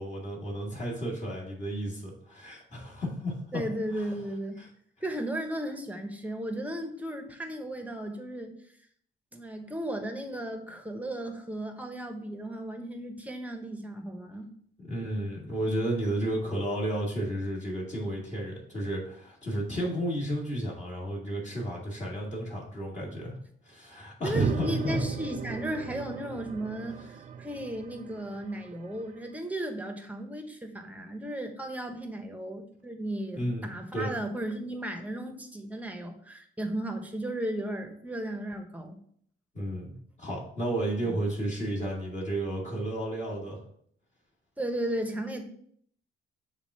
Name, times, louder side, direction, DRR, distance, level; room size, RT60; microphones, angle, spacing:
voice 1, 0.0-3.6 3.9-4.1 4.6-4.7 14.8-23.3 23.6-25.0 33.3-34.1 39.5-43.6, right 1 dB, 35° left, -3 dB, 2.0 m, -32 dB
voice 2, 3.5-4.6 5.0-8.5 9.3-14.5 24.2-39.0 39.6-39.7 41.0-41.2 44.6-45.4, right 1 dB, 5° right, 5 dB, 1.0 m, -35 dB
sound 1, 24.3-29.0, right 7 dB, 35° right, 0.4 m, -36 dB
7.0 x 2.5 x 5.5 m, 0.63 s
cardioid pair, 90°, 20 cm